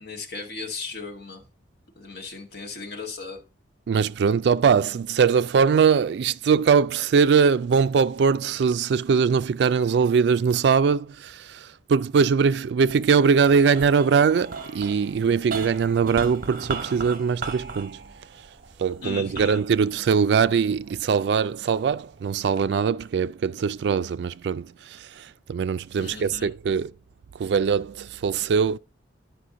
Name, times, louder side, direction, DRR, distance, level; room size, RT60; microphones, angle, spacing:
voice 1, 0.0-1.4 2.0-3.4 19.0-19.6 26.0-26.5, left 4 dB, 60° left, 1.8 m, -36 dB
voice 2, 3.9-18.0 18.8-26.9 27.4-28.8, right 6 dB, 65° right, 0.3 m, -21 dB
sound 1, 12.8-21.3 21.9-22.6, right 4 dB, 50° right, 1.0 m, -38 dB
10.0 x 5.0 x 3.7 m
head